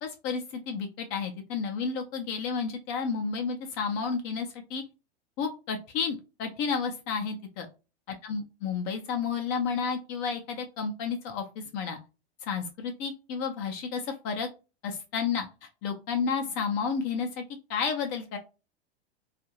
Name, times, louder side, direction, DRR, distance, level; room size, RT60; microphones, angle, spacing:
voice 1, 0.0-4.8 5.4-7.7 8.2-12.0 12.4-14.5 14.8-17.4 17.7-18.4, left 5 dB, 35° left, 4 dB, 0.5 m, -31 dB
2.5 x 2.4 x 2.8 m, 0.30 s
figure-of-eight pair, 95°, 32 cm